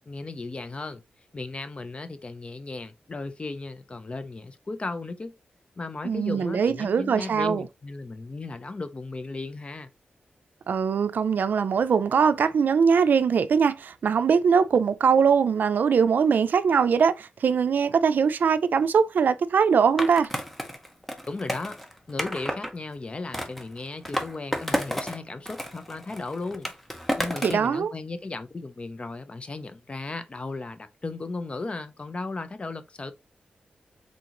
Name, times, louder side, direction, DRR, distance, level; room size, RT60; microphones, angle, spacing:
voice 1, 0.1-1.0 1.3-5.3 5.8-9.9 21.3-21.8 22.1-26.7 27.2-33.1, left 3 dB, 35° left, 0.6 m, -35 dB
voice 2, 6.0-7.6 10.7-20.3 27.4-27.9, right 6 dB, 75° right, 0.4 m, -22 dB
Skateboard, 20.0-22.7 23.3-25.2 25.4-27.7, equal, 5° left, 0.8 m, -31 dB
3.8 x 3.8 x 2.9 m
wide cardioid pair, 85°, 3 cm